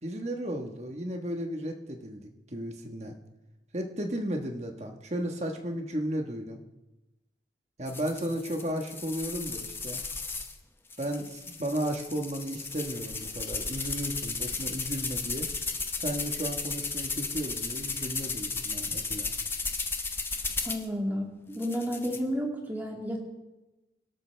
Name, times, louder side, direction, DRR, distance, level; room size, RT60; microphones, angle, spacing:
voice 1, 0.0-3.1 3.7-6.6 7.8-10.0 11.0-15.5 16.0-19.3, equal, 40° right, 3 dB, 1.4 m, -34 dB
sound 1, 7.9-10.5 10.9-20.9 21.5-22.2, left 4 dB, 15° left, 0.8 m, -34 dB
voice 2, 20.6-23.2, equal, 10° right, 0 dB, 2.1 m, -32 dB
25.5 x 12.0 x 3.4 m, 1.0 s
head